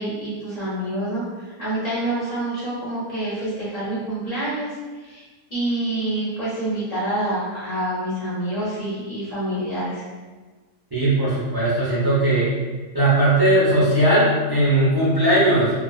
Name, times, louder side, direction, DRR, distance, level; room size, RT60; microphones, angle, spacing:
voice 1, 0.0-4.7 5.0-5.2 5.5-10.0, right 1 dB, 40° left, -10 dB, 0.8 m, -27 dB
voice 2, 10.9-12.5 12.9-15.7, right 1 dB, 35° right, -11 dB, 0.3 m, -18 dB
2.3 x 2.3 x 2.3 m, 1.3 s
omnidirectional pair, 1.4 m